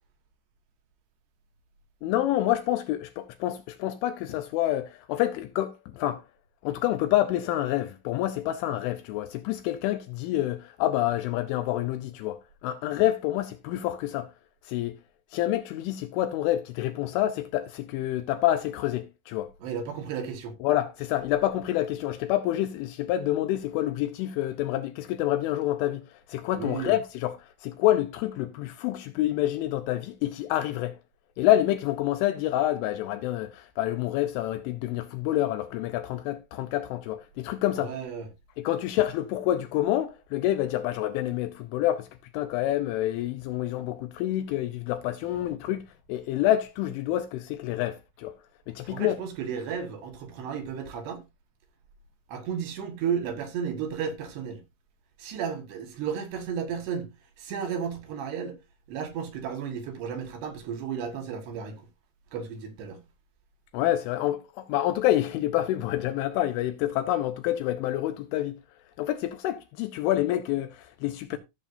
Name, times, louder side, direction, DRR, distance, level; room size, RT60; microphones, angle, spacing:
voice 1, 2.0-6.2 6.6-14.3 14.6-15.0 15.3-19.5 20.6-31.0 31.4-37.9 38.6-42.1 42.3-48.4 48.7-49.2 63.7-68.6 69.0-71.4, left 13 dB, 80° left, 2.8 m, -27 dB
voice 2, 19.6-20.5 26.5-26.9 37.8-38.3 48.8-51.2 52.3-54.6 55.2-57.1 57.4-58.6 58.9-61.8 62.3-63.0, right 7 dB, 65° right, 3.1 m, -33 dB
15.5 x 7.0 x 2.6 m
omnidirectional pair, 6.0 m